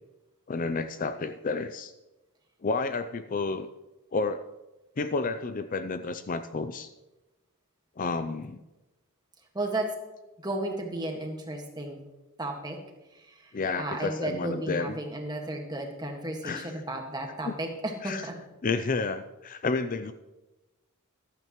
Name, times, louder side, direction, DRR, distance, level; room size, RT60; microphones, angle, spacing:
voice 1, 0.5-1.9 2.6-3.7 4.1-4.4 5.0-6.9 8.0-8.6 13.5-15.0 16.4-16.7 17.4-17.5 18.0-18.2 18.6-20.1, left 4 dB, 35° left, 10 dB, 0.4 m, -30 dB
voice 2, 9.5-9.9 10.4-12.0 12.4-12.8 13.1-18.3, right 1 dB, 20° right, 2 dB, 1.7 m, -34 dB
14.5 x 12.5 x 3.1 m, 1.1 s
head